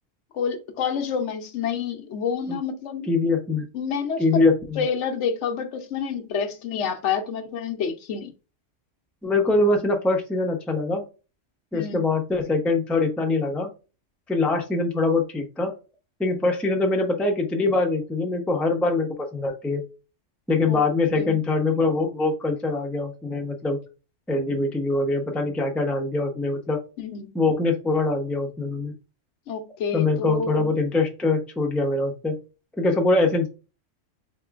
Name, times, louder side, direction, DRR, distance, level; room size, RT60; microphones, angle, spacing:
voice 1, 0.3-3.1 3.7-4.2 4.8-8.3 11.7-12.0 20.7-20.8 21.2-21.4 27.0-27.3 29.5-30.8, left 6 dB, 70° left, 0.9 m, -28 dB
voice 2, 3.1-3.6 4.2-4.8 9.2-11.0 11.7-13.7 14.3-15.7 16.2-19.8 20.5-23.8 24.3-26.8 27.3-28.9 29.9-32.4 32.7-33.5, left 3 dB, ahead, 0.4 m, -23 dB
3.8 x 3.6 x 2.4 m
omnidirectional pair, 1.3 m